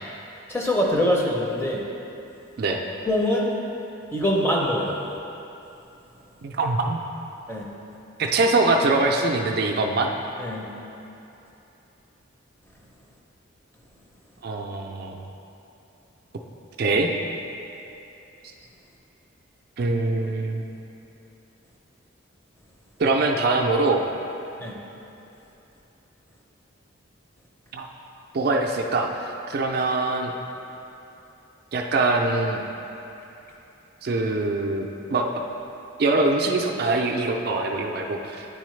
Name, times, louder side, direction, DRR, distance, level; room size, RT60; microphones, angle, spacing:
voice 1, 0.5-1.8 3.1-3.5 4.1-5.0 7.5-7.6 10.4-10.6 24.6-24.7, equal, 10° left, -2 dB, 0.5 m, -23 dB
voice 2, 6.4-7.0 8.2-10.1 14.4-15.3 16.8-17.1 19.8-20.6 23.0-24.1 27.7-27.9 28.3-30.3 31.7-32.6 34.0-35.3 36.0-38.5, right 2 dB, 50° right, 2 dB, 0.4 m, -23 dB
9.1 x 4.1 x 3.2 m, 2.9 s
head